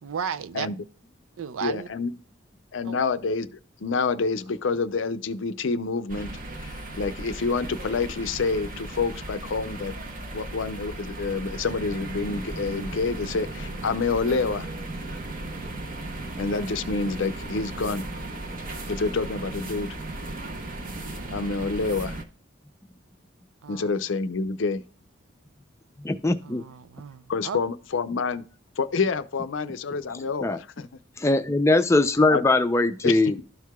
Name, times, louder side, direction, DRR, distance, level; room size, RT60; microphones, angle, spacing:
voice 1, 0.0-0.7 1.4-1.9 2.8-3.0 16.2-16.6 23.6-23.9 26.4-27.6 31.8-31.9, right 7 dB, 85° right, 0.4 m, -35 dB
voice 2, 1.6-2.1 2.7-3.5 3.8-6.3 6.6-9.9 10.3-14.7 16.4-18.0 18.9-19.9 21.3-22.2 23.7-24.8 27.3-28.4 28.8-30.9 32.3-32.4 33.0-33.4, left 4 dB, 70° left, 0.5 m, -27 dB
sound 1, 6.1-22.2, right 2 dB, 45° right, 0.9 m, -36 dB
voice 3, 26.0-26.6 30.4-30.6 31.2-33.4, left 2 dB, 15° left, 0.4 m, -21 dB
13.0 x 4.7 x 2.3 m
head